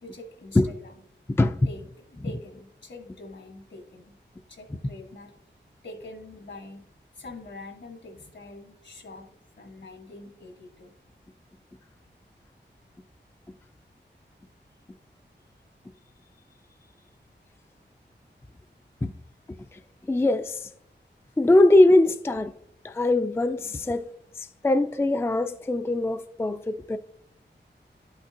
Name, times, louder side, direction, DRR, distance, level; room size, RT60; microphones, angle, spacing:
voice 1, 0.0-0.9 1.7-4.2 4.5-5.3 5.8-6.9 7.1-9.3 9.6-11.0, left 2 dB, 70° left, 1.6 m, -44 dB
voice 2, 20.1-20.7 21.4-22.5 22.8-27.0, left 2 dB, 15° left, 0.3 m, -22 dB
11.5 x 5.9 x 2.8 m
wide cardioid pair, 80°, 19 cm